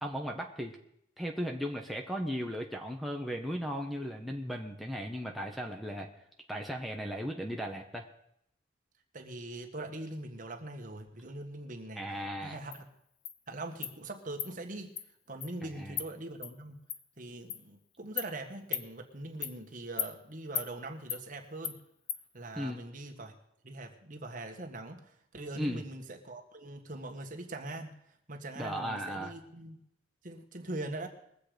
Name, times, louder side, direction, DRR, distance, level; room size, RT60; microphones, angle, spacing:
voice 1, 0.0-0.8 1.2-6.1 6.5-8.1 12.0-12.6 15.6-16.0 22.6-22.8 25.5-25.8 28.6-29.3, equal, ahead, 3 dB, 1.0 m, -36 dB
voice 2, 9.1-12.0 12.4-12.9 13.5-14.9 15.3-16.8 17.2-21.8 22.3-23.3 23.6-27.9 28.3-29.8 30.2-31.1, right 2 dB, 45° right, 3 dB, 1.6 m, -42 dB
Insect, 12.7-12.8 13.3-13.4 13.8-13.9 14.4-14.5 15.0-15.1 15.4-15.5 16.0-16.1 16.4-16.5 16.9-17.0 17.5-17.6 18.2-18.3 18.7-18.9 19.4-19.6 20.0-20.1 20.6-20.7 21.1-21.2 21.6-21.8 22.1-22.2, left 10 dB, 75° left, 0.9 m, -35 dB
21.5 x 7.7 x 5.1 m, 0.75 s
head